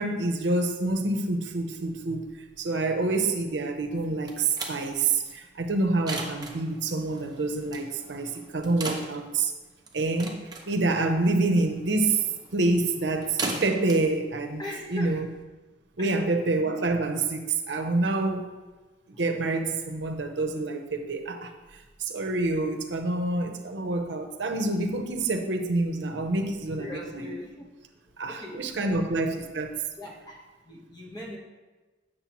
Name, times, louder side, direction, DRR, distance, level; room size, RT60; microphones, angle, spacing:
voice 1, 0.0-2.3 2.6-9.5 9.9-12.3 12.5-14.6 14.9-15.3 16.0-18.5 19.1-27.4 28.2-29.7, right 2 dB, 85° right, 6 dB, 0.7 m, -27 dB
sound 1, 4.0-15.4, right 3 dB, 20° right, 0.8 m, -39 dB
voice 2, 14.6-15.2 16.0-16.2 26.7-27.7 28.3-29.0 29.9-31.4, left 1 dB, 25° left, -1 dB, 1.1 m, -40 dB
8.3 x 6.5 x 3.0 m, 1.2 s
head